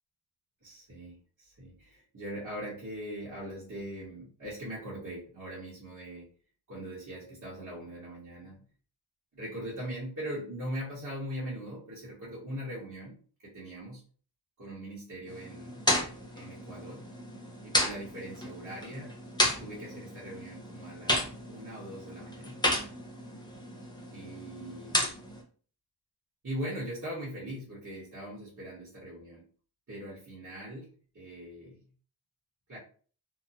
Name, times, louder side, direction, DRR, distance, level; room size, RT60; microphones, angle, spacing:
voice 1, 0.6-6.3 6.7-8.6 9.3-13.1 13.4-14.0 14.6-15.8 16.3-17.0 17.6-19.1 19.6-22.6 24.1-25.2 26.4-29.5 29.9-31.8 32.7-32.8, equal, 45° right, -9 dB, 1.2 m, -41 dB
sound 1, 15.3-25.4, left 1 dB, 10° left, 0.7 m, -33 dB
2.9 x 2.3 x 2.6 m, 0.43 s
wide cardioid pair, 85°, 44 cm